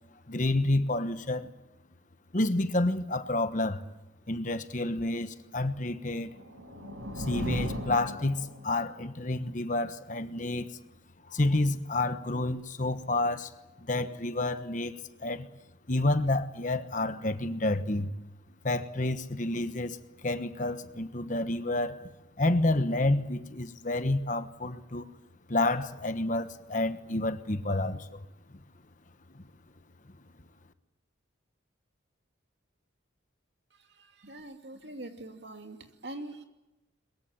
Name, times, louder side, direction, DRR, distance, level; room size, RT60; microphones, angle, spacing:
voice 1, 0.3-1.5 2.3-3.8 4.3-6.3 7.2-10.8 11.3-13.5 13.8-15.5 15.9-18.1 18.6-22.1 22.4-25.1 25.5-28.2 29.3-29.4, left 2 dB, 40° left, 1.2 m, -29 dB
sound 1, 6.1-8.9, equal, 90° right, 5.4 m, -37 dB
voice 2, 33.7-36.4, right 1 dB, 60° right, 2.6 m, -44 dB
22.5 x 22.0 x 8.9 m
head